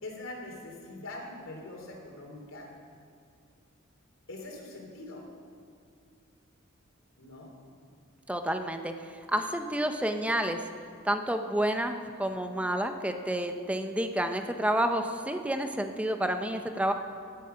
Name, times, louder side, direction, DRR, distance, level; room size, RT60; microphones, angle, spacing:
voice 1, 0.0-2.7 4.3-5.3 7.2-7.5, left 2 dB, 70° left, 0 dB, 3.4 m, -43 dB
voice 2, 8.3-8.9 9.3-10.6 11.0-16.9, right 1 dB, 5° right, 6 dB, 0.8 m, -29 dB
16.5 x 13.0 x 5.8 m, 2.4 s
head